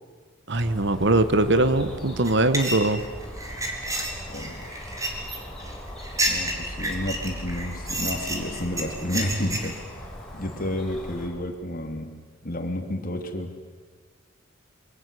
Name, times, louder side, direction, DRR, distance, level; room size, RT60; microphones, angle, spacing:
sound 1, 0.5-11.3, equal, 5° left, 6.6 m, -39 dB
voice 1, 0.5-3.0, right 2 dB, 60° right, 12 dB, 1.4 m, -21 dB
sound 2, 2.2-9.7, right 1 dB, 15° right, 3.9 m, -30 dB
voice 2, 4.3-4.6 6.2-10.1 10.3-12.1 12.4-13.5, left 1 dB, 45° left, 5 dB, 3.1 m, -31 dB
26.5 x 23.5 x 8.4 m, 1.5 s
head